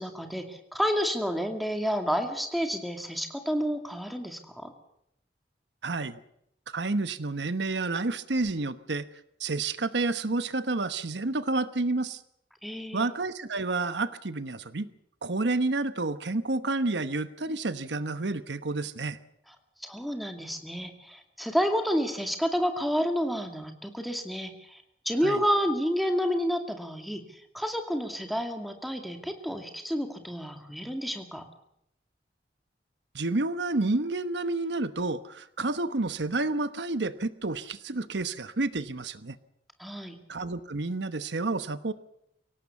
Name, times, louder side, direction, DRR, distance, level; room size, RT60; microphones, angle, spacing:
voice 1, 0.0-4.7 12.6-13.1 19.8-31.4 39.8-40.2, equal, ahead, 5 dB, 2.3 m, -30 dB
voice 2, 5.8-6.2 6.7-9.1 9.4-12.2 12.9-14.9 15.2-19.2 25.2-25.4 33.1-39.4 40.3-41.9, right 3 dB, 90° right, 12 dB, 1.1 m, -30 dB
24.0 x 18.0 x 7.1 m, 0.76 s
head